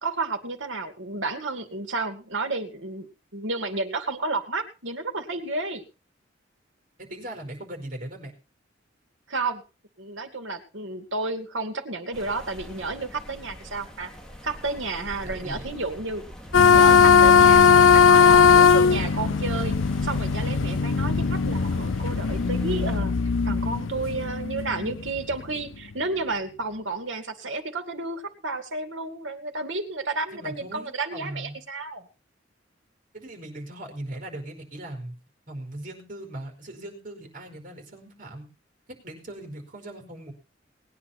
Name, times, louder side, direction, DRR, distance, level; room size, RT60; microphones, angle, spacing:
voice 1, 0.0-3.1 3.3-5.8 9.3-9.6 10.0-14.1 14.4-16.2 16.7-19.8 20.0-23.1 23.4-32.1, right 3 dB, 80° right, 6 dB, 2.4 m, -31 dB
voice 2, 7.0-8.3 15.2-15.7 30.3-31.6 33.1-35.1 35.5-38.5 38.9-40.3, right 1 dB, 45° right, 5 dB, 4.9 m, -39 dB
sound 1, 12.1-23.0, equal, 5° left, 2.5 m, -42 dB
sound 2, 16.5-25.4, left 6 dB, 90° left, 0.6 m, -18 dB
19.5 x 9.8 x 4.3 m, 0.32 s
head